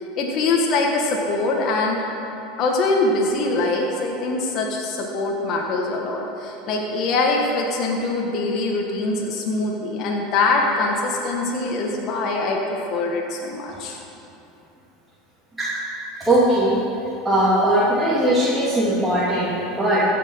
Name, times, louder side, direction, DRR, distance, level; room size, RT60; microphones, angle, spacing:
voice 1, 0.2-2.0 2.6-14.0, left 3 dB, 50° left, 0 dB, 1.5 m, -23 dB
voice 2, 16.3-16.8 17.2-20.0, right 1 dB, 10° right, -10 dB, 2.8 m, -19 dB
15.0 x 6.0 x 5.7 m, 2.8 s
hypercardioid pair, 80°, 0 cm